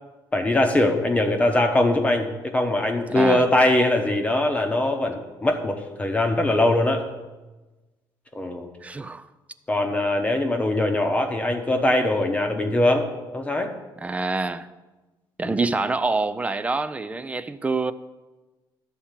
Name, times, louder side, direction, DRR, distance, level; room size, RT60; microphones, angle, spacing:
voice 1, 0.3-7.0 8.3-8.7 9.7-13.1 13.3-13.7 15.5-15.6, left 1 dB, 15° left, 0.9 m, -22 dB
voice 2, 3.1-3.4 8.8-9.3 14.0-14.7 15.4-17.9, right 3 dB, 15° right, 0.4 m, -26 dB
12.5 x 4.3 x 7.3 m
cardioid pair, 125°, 8 cm